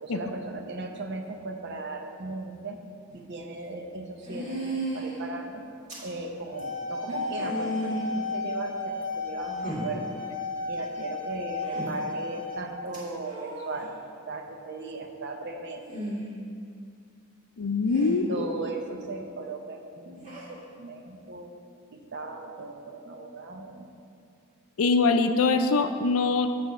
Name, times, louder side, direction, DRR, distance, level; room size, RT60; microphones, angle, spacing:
voice 1, 0.0-2.8 3.1-5.6 6.0-10.1 10.6-14.0 14.3-15.8 18.1-21.5 21.9-23.9, right 3 dB, 55° right, 4 dB, 0.7 m, -37 dB
sound 1, 3.1-3.2 4.3-5.2 5.9-6.1 6.6-6.7 7.1-8.1 9.0-9.1 9.6-9.9 11.6-11.9 12.9-13.7 15.8-16.3 17.9-18.1 20.2-20.5, right 1 dB, 35° right, 2.0 m, -34 dB
sound 2, 6.4-12.6, left 3 dB, 20° left, 1.5 m, -34 dB
voice 2, 17.6-18.4 24.8-26.5, left 4 dB, 85° left, 8 dB, 0.5 m, -23 dB
8.2 x 3.4 x 6.6 m, 2.3 s
head